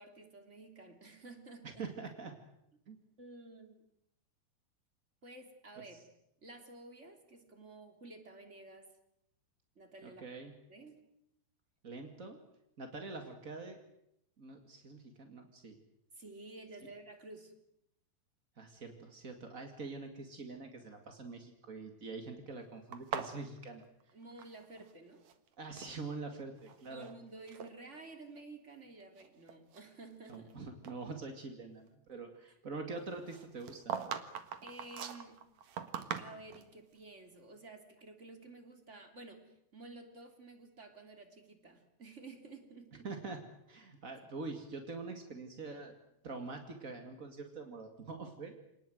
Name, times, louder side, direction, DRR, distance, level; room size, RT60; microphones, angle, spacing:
voice 1, 0.0-1.8 3.2-3.8 5.2-6.0 6.4-8.9 9.7-10.2 10.7-11.0 16.1-17.5 24.1-25.2 26.9-30.5 34.6-35.4 36.2-43.1, right 2 dB, 20° right, 5 dB, 2.9 m, -52 dB
voice 2, 1.8-2.3 2.9-3.0 5.7-5.8 10.0-10.5 11.8-12.4 12.8-13.8 14.4-15.8 18.6-23.8 25.6-27.1 30.3-33.9 43.0-43.4 43.7-45.9 46.2-48.5, right 3 dB, 35° right, 5 dB, 1.2 m, -45 dB
sound 1, 22.9-24.9 25.2-26.0 26.6-27.1 27.5-27.7 28.4-28.5 29.0-30.5 30.8-31.0 33.3-36.7, right 8 dB, 55° right, 2.2 m, -42 dB
28.0 x 19.0 x 9.2 m, 0.81 s
omnidirectional pair, 5.0 m